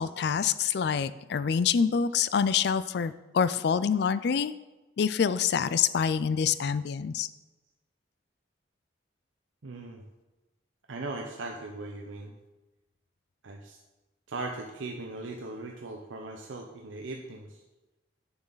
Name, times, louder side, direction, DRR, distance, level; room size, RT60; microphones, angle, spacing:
voice 1, 0.0-4.5 5.0-7.3, left 7 dB, 55° left, 15 dB, 0.3 m, -26 dB
voice 2, 9.6-10.0 10.9-12.3 13.4-13.8 14.3-17.6, right 2 dB, 80° right, 2 dB, 0.7 m, -39 dB
8.8 x 7.1 x 3.9 m, 1.1 s
head